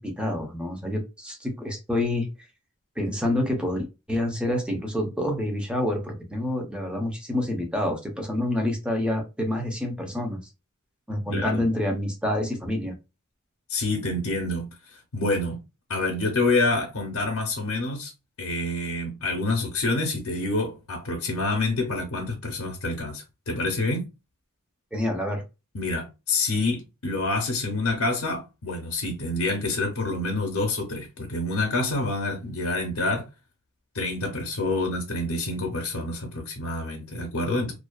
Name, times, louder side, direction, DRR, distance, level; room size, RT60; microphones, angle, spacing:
voice 1, 0.0-2.3 3.0-10.4 11.1-12.9 24.9-25.4, left 1 dB, 5° right, 0.6 m, -27 dB
voice 2, 11.3-11.6 13.7-14.7 15.1-15.6 15.9-18.1 18.4-24.1 25.7-33.3 33.9-37.7, left 2 dB, 65° left, 0.6 m, -27 dB
2.5 x 2.2 x 2.2 m
head